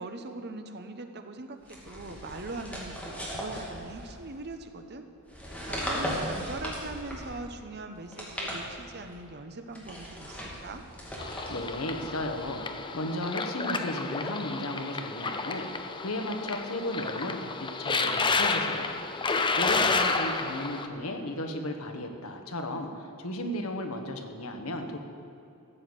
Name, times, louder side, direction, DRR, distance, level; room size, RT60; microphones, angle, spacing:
voice 1, 0.0-5.0 5.4-10.8, right 2 dB, 50° right, 7 dB, 1.0 m, -41 dB
sound 1, 1.6-4.4 5.2-7.5 8.0-9.1 9.7-12.6, equal, 5° left, 2.6 m, -38 dB
sound 2, 11.2-20.9, left 4 dB, 20° left, 0.6 m, -30 dB
voice 2, 11.5-25.0, left 1 dB, 70° left, 4 dB, 1.4 m, -35 dB
13.5 x 7.3 x 8.0 m, 2.8 s
head